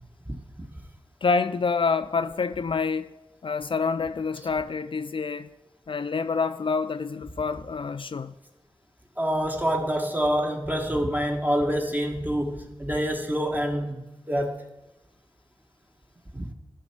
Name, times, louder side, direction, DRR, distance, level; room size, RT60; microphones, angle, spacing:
voice 1, 1.2-3.1 3.4-5.5 5.9-8.3, left 5 dB, 55° left, 0.4 m, -27 dB
voice 2, 9.2-14.0 14.3-14.7 16.3-16.5, equal, 15° right, 1.4 m, -26 dB
13.0 x 5.7 x 4.5 m
cardioid pair, 55°, 11 cm